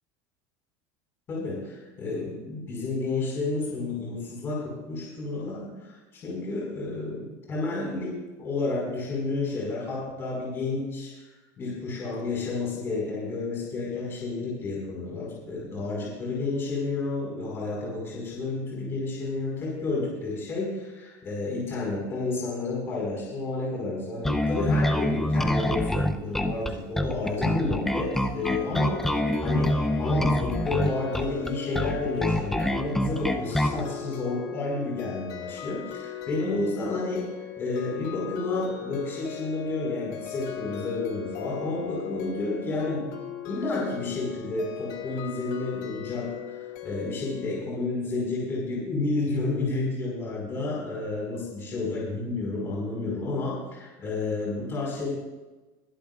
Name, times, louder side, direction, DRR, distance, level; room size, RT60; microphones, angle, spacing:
voice 1, 1.3-11.3 11.6-29.1 29.4-43.1 43.5-46.6 46.8-55.1, left 3 dB, 25° left, -5 dB, 5.0 m, -31 dB
Bass guitar, 24.2-33.8, left 1 dB, 5° left, 0.6 m, -26 dB
sound 1, 28.4-47.6, left 10 dB, 65° left, 1.7 m, -39 dB
22.5 x 12.0 x 2.5 m, 1.2 s
cardioid pair, 165°, 9 cm